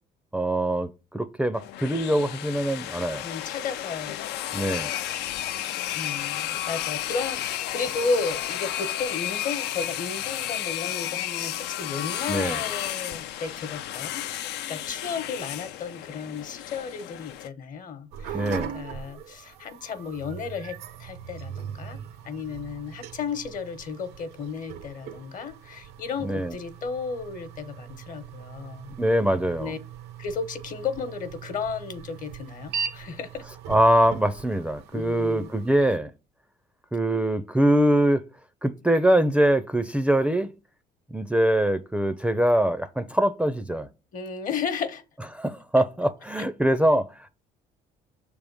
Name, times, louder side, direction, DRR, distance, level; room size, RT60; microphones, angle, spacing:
voice 1, 0.3-3.2 4.5-4.9 12.3-12.6 18.3-18.7 26.2-26.5 29.0-29.7 33.7-36.1 36.9-38.2 38.6-40.5 41.1-43.9 45.3-47.1, right 1 dB, 5° right, 0.5 m, -23 dB
sound 1, 1.5-17.5, left 12 dB, 80° left, 0.5 m, -32 dB
voice 2, 3.2-4.2 4.9-5.1 5.9-18.5 18.7-22.0 22.2-28.9 29.6-29.8 30.2-33.4 34.9-35.5 44.1-45.0, left 5 dB, 50° left, 1.0 m, -33 dB
sound 2, 18.1-36.0, right 8 dB, 80° right, 0.7 m, -40 dB
6.8 x 3.5 x 5.3 m
cardioid pair, 110°, 17 cm